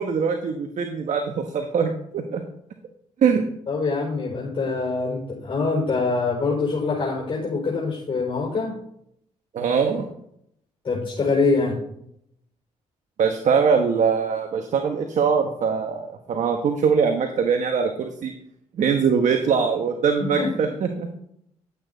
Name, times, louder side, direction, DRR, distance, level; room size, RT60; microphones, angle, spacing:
voice 1, 0.0-2.4 3.2-3.4 9.5-10.1 13.2-18.3 18.7-21.1, right 6 dB, 65° right, 5 dB, 1.2 m, -22 dB
voice 2, 3.7-8.7 10.8-11.8 20.4-20.5, left 4 dB, 40° left, -3 dB, 4.4 m, -24 dB
11.5 x 8.3 x 4.0 m, 0.71 s
supercardioid pair, 65°, 13 cm